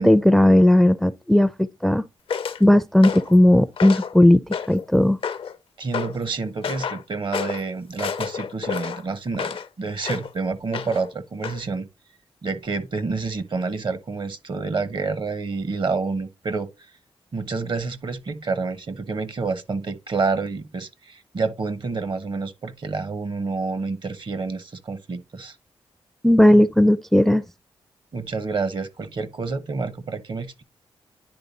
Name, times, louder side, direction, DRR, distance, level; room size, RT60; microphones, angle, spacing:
voice 1, 0.0-2.0 2.6-4.4 4.7-5.2 26.2-27.4, left 1 dB, 5° left, 0.4 m, -16 dB
sound 1, 2.3-2.6 3.0-3.4 3.8-4.1 4.5-4.9 5.2-5.6 5.9-6.2 6.6-7.0 7.3-7.6 8.0-9.7 10.0-10.3 10.7-11.1 11.4-11.6, left 7 dB, 65° left, 0.5 m, -30 dB
voice 2, 5.8-11.9 12.4-16.7 17.3-25.6 28.1-30.6, right 4 dB, 50° right, 0.8 m, -28 dB
9.9 x 3.3 x 4.0 m
cardioid pair, 65°, 10 cm